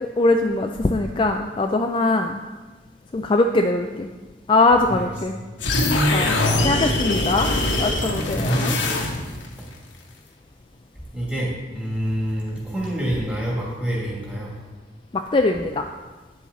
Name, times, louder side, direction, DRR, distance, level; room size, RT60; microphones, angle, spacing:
voice 1, 0.0-2.4 3.1-4.1 4.5-5.3 6.1-6.3 6.6-7.5 7.8-8.8 15.1-15.8, left 2 dB, 25° left, 4 dB, 0.3 m, -21 dB
sound 1, 5.6-9.5, left 2 dB, 90° left, 1.3 m, -22 dB
voice 2, 6.2-6.7 8.3-8.8 11.1-14.5, equal, 5° right, -5 dB, 2.4 m, -26 dB
9.6 x 7.3 x 4.0 m, 1.3 s
head